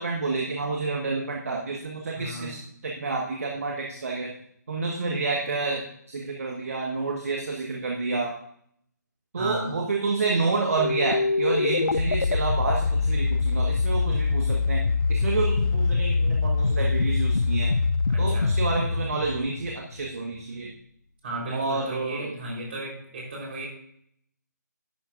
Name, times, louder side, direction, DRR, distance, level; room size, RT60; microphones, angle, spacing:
voice 1, 0.0-2.6 2.8-4.3 4.7-5.8 6.1-8.4 9.3-14.8 15.1-17.7 18.2-20.7 21.5-22.3, right 3 dB, 50° right, 0 dB, 1.4 m, -29 dB
voice 2, 2.2-2.6 9.4-9.8 18.1-18.5 21.2-23.7, right 1 dB, 35° right, -2 dB, 3.8 m, -34 dB
sound 1, 10.8-20.1, left 4 dB, 75° left, 0.4 m, -24 dB
11.0 x 9.1 x 2.5 m, 0.69 s
figure-of-eight pair, 145°, 10 cm